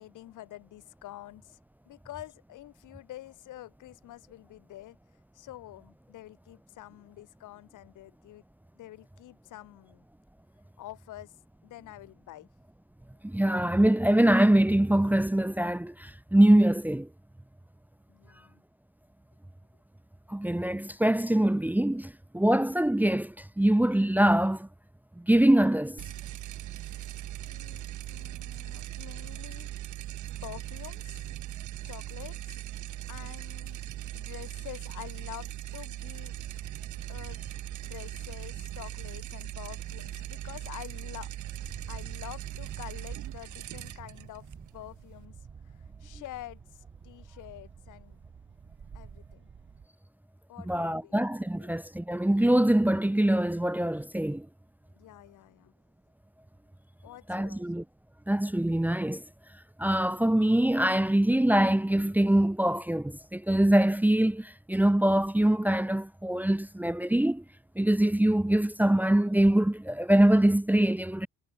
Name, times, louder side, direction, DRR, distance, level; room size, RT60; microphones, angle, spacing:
voice 1, 0.0-1.6 1.9-5.0 5.3-8.4 8.8-10.0 10.8-11.3 11.6-12.5 18.1-18.6 27.4-29.7 30.4-31.3 31.8-32.6 33.1-33.8 34.1-36.3 37.1-37.4 37.8-41.3 41.9-44.5 44.7-45.4 45.6-48.2 48.9-49.5 50.5-51.2 51.6-51.7 54.9-55.7 57.0-57.6, left 15 dB, 85° left, 5.9 m, -47 dB
voice 2, 13.2-17.1 20.3-24.7 25.2-26.0 50.7-54.5 57.3-57.8 58.3-59.2 59.8-67.4 67.8-71.3, right 1 dB, 5° right, 0.8 m, -24 dB
sound 1, 26.0-45.3, right 14 dB, 75° right, 1.3 m, -40 dB
sound 2, 36.2-49.9, right 6 dB, 40° right, 4.1 m, -50 dB
cardioid pair, 90°, 30 cm